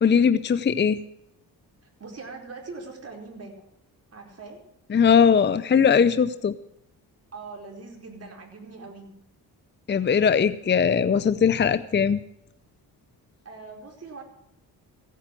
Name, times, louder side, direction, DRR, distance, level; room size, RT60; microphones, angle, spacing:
voice 1, 0.0-1.0 4.9-6.6 9.9-12.2, left 6 dB, 30° left, 13 dB, 0.6 m, -20 dB
voice 2, 2.0-3.5 4.1-4.6 7.3-9.1 13.4-14.2, right 3 dB, 40° right, 1 dB, 4.7 m, -41 dB
15.5 x 9.3 x 7.7 m, 0.83 s
cardioid pair, 85°, 38 cm